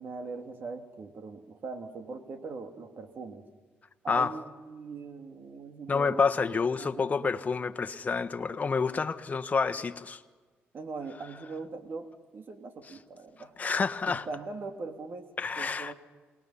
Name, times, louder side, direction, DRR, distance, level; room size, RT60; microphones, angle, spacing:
voice 1, 0.0-3.4 4.0-6.2 6.8-7.1 10.7-12.1 12.3-13.5 14.0-15.3 15.5-15.9, right 4 dB, 55° right, 2.5 m, -41 dB
voice 2, 5.9-10.2 13.6-14.3 15.4-15.9, left 5 dB, 35° left, 1.4 m, -28 dB
28.0 x 20.5 x 5.7 m
cardioid pair, 75°, 4 cm